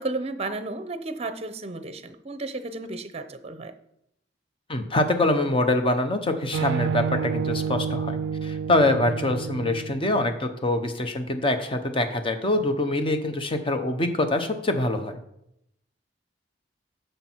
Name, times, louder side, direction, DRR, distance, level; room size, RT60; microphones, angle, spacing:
voice 1, 0.0-3.7, right 2 dB, 35° right, 11 dB, 0.7 m, -33 dB
voice 2, 4.7-15.2, left 2 dB, 30° left, 7 dB, 0.9 m, -24 dB
sound 1, 6.5-10.3, right 7 dB, 80° right, 0.3 m, -29 dB
9.7 x 6.7 x 4.5 m, 0.78 s
head